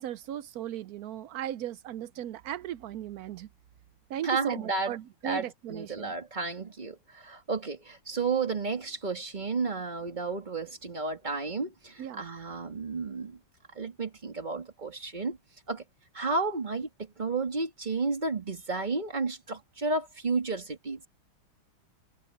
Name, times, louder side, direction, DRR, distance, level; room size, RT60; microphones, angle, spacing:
voice 1, 0.0-3.5 4.1-6.1 12.0-12.3, right 11 dB, 80° right, 0.8 m, -37 dB
voice 2, 4.2-4.9 5.2-13.4 13.7-15.4 15.7-15.8 16.1-21.0, right 4 dB, 20° right, 2.3 m, -32 dB
omnidirectional pair, 2.3 m